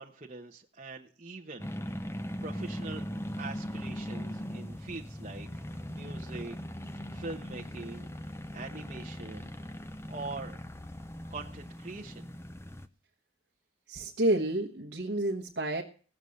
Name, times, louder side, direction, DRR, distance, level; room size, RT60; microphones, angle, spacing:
voice 1, 0.0-2.0 2.4-3.0 3.4-5.5 5.9-6.6 7.1-8.1 8.5-9.7 10.1-10.6 11.3-12.3, right 3 dB, 35° right, -3 dB, 1.1 m, -43 dB
sound 1, 1.6-12.9, equal, 15° left, 0.7 m, -40 dB
voice 2, 13.9-15.8, right 1 dB, 65° right, 1 dB, 1.3 m, -29 dB
17.0 x 7.1 x 6.5 m, 0.42 s
head